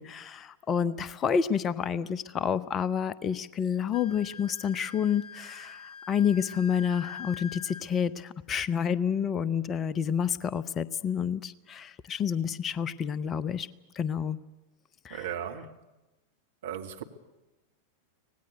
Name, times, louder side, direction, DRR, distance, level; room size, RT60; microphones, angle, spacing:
voice 1, 0.0-13.7 13.9-14.4 15.0-15.3, left 7 dB, 25° left, 18 dB, 0.8 m, -29 dB
Wind instrument woodwind instrument, 3.9-7.8, left 6 dB, 45° left, 2.0 m, -44 dB
voice 2, 15.1-15.7 16.6-17.0, right 9 dB, 60° right, 5 dB, 2.0 m, -36 dB
25.5 x 18.5 x 8.1 m, 1.0 s
figure-of-eight pair, 90°, 0 cm